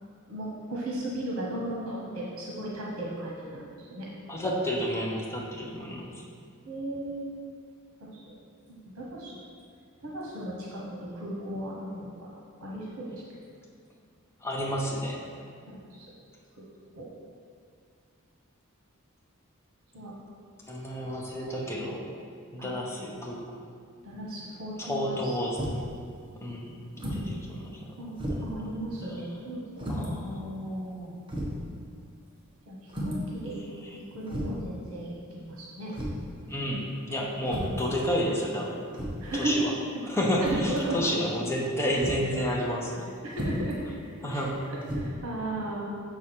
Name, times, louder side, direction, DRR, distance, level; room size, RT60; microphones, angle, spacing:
voice 1, 0.3-4.1 6.6-7.3 8.0-8.3 8.9-9.3 10.0-13.2 15.7-16.1 16.6-16.7 17.0-17.1 19.9-20.2 22.6-22.7 24.0-25.4 26.3-26.4 28.0-30.1 32.7-32.8 33.0-33.6 33.9-35.9 39.2-39.5 40.4-41.0 43.2-44.0 44.3-44.4 44.9-45.9, right 1 dB, 80° right, -4 dB, 1.1 m, -36 dB
voice 2, 4.3-6.1 14.4-15.2 20.7-22.0 22.5-23.4 24.8-25.6 26.4-28.8 29.9-31.1 36.5-38.8 39.3-39.7 40.1-43.1 44.2-44.6, equal, 10° left, -3 dB, 0.8 m, -31 dB
sound 1, 25.6-25.9 27.0-27.3 27.7-27.8 28.2-28.6 29.8-30.1 30.8-30.9 31.3-31.6 32.9-33.3 34.3-34.7 35.9-36.3 37.4-37.9 38.9-39.3 40.4-40.8 42.0-42.3 43.3-43.7 44.8-45.0, equal, 25° right, 1.1 m, -33 dB
6.2 x 4.8 x 4.4 m, 2.2 s
head